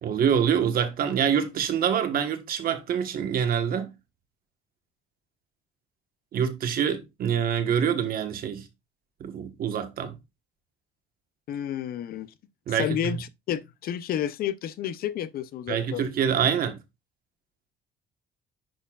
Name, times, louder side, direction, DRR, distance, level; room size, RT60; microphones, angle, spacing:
voice 1, 0.0-3.9 6.3-8.7 9.2-10.2 12.7-13.1 15.7-16.8, right 8 dB, 60° right, 1.3 m, -25 dB
voice 2, 11.5-12.3 12.7-16.0, left 10 dB, 60° left, 0.6 m, -31 dB
10.5 x 4.5 x 2.4 m
cardioid pair, 110°, 17 cm